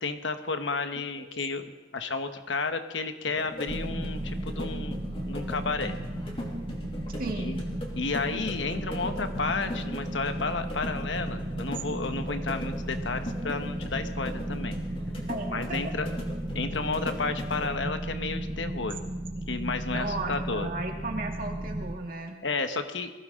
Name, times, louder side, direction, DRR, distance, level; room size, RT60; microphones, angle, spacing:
voice 1, 0.0-1.6 1.9-5.0 5.2-6.0 7.3-7.6 8.0-14.8 15.5-16.1 16.5-19.0 19.5-20.7 22.4-23.1, left 4 dB, 80° left, 7 dB, 1.2 m, -32 dB
sound 1, 3.3-17.7, left 1 dB, 30° left, 2.7 m, -39 dB
sound 2, 3.7-22.0, right 1 dB, 30° right, 0.8 m, -35 dB
voice 2, 7.2-7.6 15.3-15.8 19.9-22.4, right 2 dB, 50° right, 1 dB, 2.1 m, -35 dB
21.0 x 16.0 x 3.7 m, 1.2 s
head